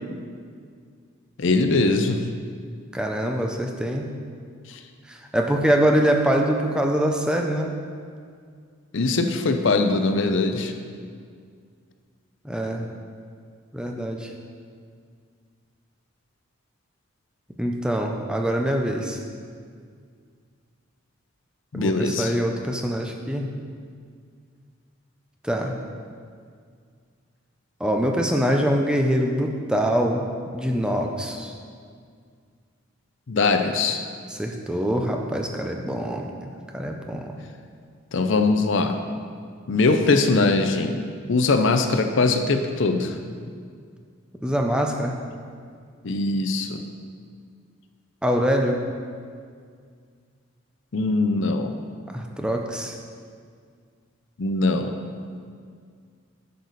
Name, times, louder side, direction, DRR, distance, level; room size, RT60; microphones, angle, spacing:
voice 1, 1.4-2.2 4.7-4.8 8.9-10.7 21.7-22.3 33.3-34.0 38.1-39.0 39.7-41.0 41.3-43.2 46.0-46.8 50.9-51.7 54.4-54.9, left 3 dB, 60° left, 7 dB, 0.6 m, -21 dB
voice 2, 2.9-4.1 5.1-7.7 12.4-12.9 13.7-14.3 17.6-19.2 21.7-23.5 25.4-25.8 27.8-31.5 34.3-37.4 44.4-45.2 48.2-48.8 52.1-53.0, equal, 5° right, 2 dB, 0.6 m, -24 dB
10.5 x 6.7 x 4.1 m, 2.1 s
head